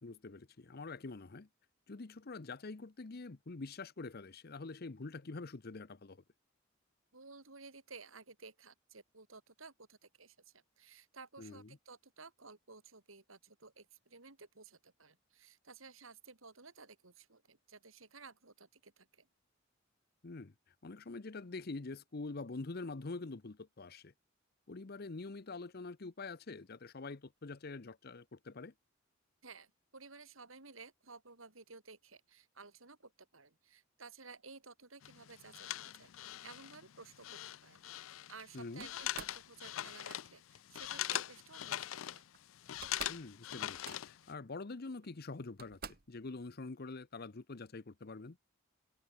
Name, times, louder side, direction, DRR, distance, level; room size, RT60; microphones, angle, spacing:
voice 1, 0.0-1.5 1.9-6.2 11.4-11.8 20.2-20.5 20.8-24.1 24.7-28.7 38.5-38.9 43.1-45.8 46.1-48.4, left 3 dB, 50° left, 0.8 m, -45 dB
voice 2, 7.1-19.3 29.4-37.8 38.3-42.2, right 4 dB, 90° right, 4.6 m, -55 dB
sound 1, 35.0-44.3, left 12 dB, 80° left, 0.5 m, -42 dB
Slam, 38.8-39.4 40.8-41.2 42.3-42.4 42.7-43.3 43.6-44.3 45.0-45.1 45.6-46.2, right 6 dB, 50° right, 1.7 m, -49 dB
head